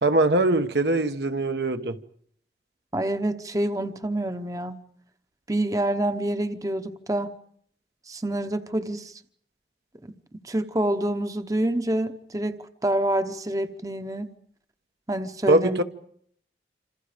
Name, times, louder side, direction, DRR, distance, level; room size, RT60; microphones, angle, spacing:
voice 1, 0.0-2.0 15.5-15.8, right 2 dB, 75° right, 1.3 m, -22 dB
voice 2, 2.9-4.8 5.5-7.3 8.1-9.1 10.4-14.3 15.1-15.8, right 1 dB, 20° right, 0.9 m, -27 dB
27.5 x 26.5 x 5.1 m
head